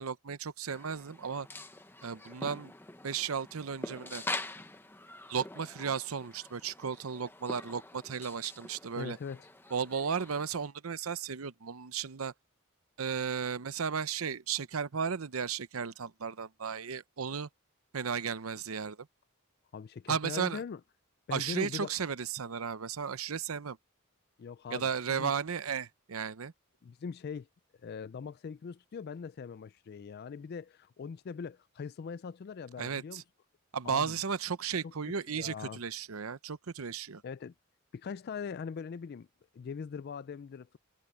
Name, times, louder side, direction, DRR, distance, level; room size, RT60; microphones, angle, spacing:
voice 1, 0.0-1.5 2.0-2.7 3.0-4.2 5.3-9.2 9.7-12.3 13.0-17.5 17.9-19.0 20.1-20.6 21.3-23.8 24.7-26.5 32.8-33.2 33.7-37.2, right 6 dB, 80° right, 0.7 m, -34 dB
sound 1, 0.7-10.7, left 2 dB, 10° left, 1.0 m, -45 dB
voice 2, 8.9-9.5 19.7-20.8 21.3-21.9 24.4-25.3 26.8-27.5 27.8-33.2 33.8-34.2 34.8-35.8 37.2-37.5 37.9-39.3 39.5-40.7, left 6 dB, 50° left, 0.3 m, -41 dB
head